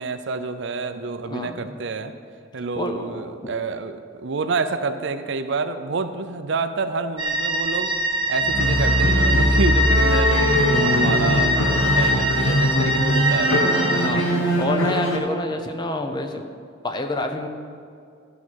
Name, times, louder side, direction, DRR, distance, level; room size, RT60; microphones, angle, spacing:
voice 1, 0.0-2.1 2.5-7.9 8.3-14.2, right 4 dB, 60° right, 10 dB, 0.6 m, -28 dB
voice 2, 1.3-1.8 2.7-3.5 13.9-14.2 14.6-16.5 16.8-17.5, left 2 dB, 20° left, 6 dB, 0.7 m, -28 dB
sound 1, 7.2-14.1, right 1 dB, 25° right, 1.2 m, -23 dB
sound 2, 8.4-15.2, equal, 80° left, 1.6 m, -21 dB
13.5 x 5.9 x 6.3 m, 2.3 s
head